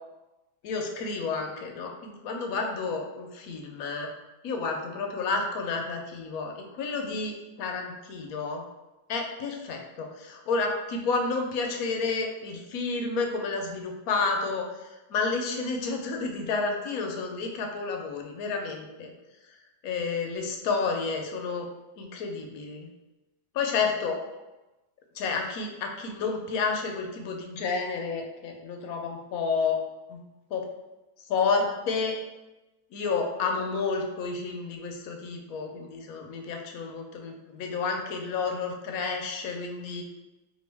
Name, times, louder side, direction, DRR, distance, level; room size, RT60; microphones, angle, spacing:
voice 1, 0.6-4.1 4.4-8.6 9.1-14.7 15.1-19.1 19.8-21.7 22.0-22.9 23.6-24.2 25.2-29.8 30.1-30.2 30.5-30.6 31.3-32.2 32.9-40.0, left 4 dB, 65° left, 2 dB, 1.0 m, -30 dB
4.5 x 2.5 x 3.3 m, 1.1 s
omnidirectional pair, 1.8 m